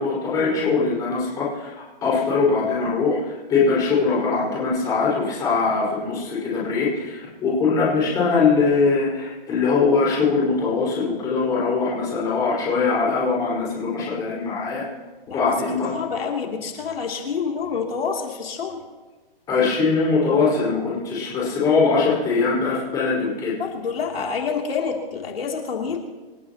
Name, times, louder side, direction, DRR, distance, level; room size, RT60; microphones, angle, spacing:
voice 1, 0.0-1.7 2.0-3.2 3.5-14.8 15.3-15.9 19.5-23.6 24.1-24.2, left 4 dB, 10° left, -6 dB, 5.2 m, -21 dB
voice 2, 15.9-18.8 23.6-26.0, left 6 dB, 80° left, 0 dB, 3.2 m, -27 dB
27.5 x 15.0 x 3.0 m, 1.3 s
hypercardioid pair, 170°, 29 cm